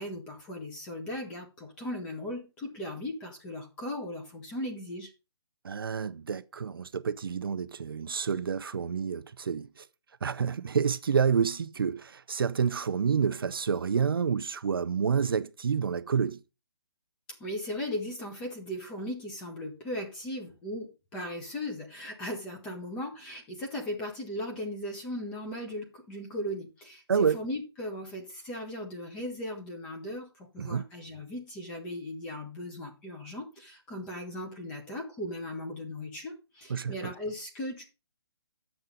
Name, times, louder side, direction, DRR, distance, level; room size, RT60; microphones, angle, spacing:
voice 1, 0.0-5.1 17.4-37.8, left 1 dB, 5° left, 0.7 m, -37 dB
voice 2, 5.6-9.9 10.2-16.4 27.1-27.4 30.6-30.8 36.7-37.1, right 6 dB, 55° right, 0.5 m, -28 dB
9.0 x 7.0 x 3.8 m
hypercardioid pair, 175°, 14 cm